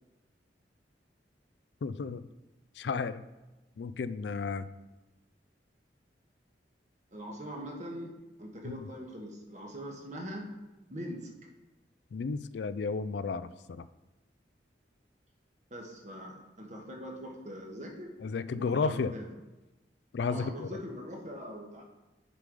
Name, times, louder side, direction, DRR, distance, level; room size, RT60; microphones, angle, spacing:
voice 1, 1.8-2.3 2.8-3.2 3.8-4.7 8.6-8.9 12.1-13.9 18.2-19.1 20.1-20.7, left 4 dB, 70° left, 14 dB, 0.4 m, -33 dB
voice 2, 7.1-8.1 8.4-10.5 10.9-11.3 15.7-18.1 18.5-19.3 20.2-21.8, equal, 45° right, 1 dB, 1.4 m, -42 dB
6.8 x 5.4 x 4.9 m, 1.1 s
head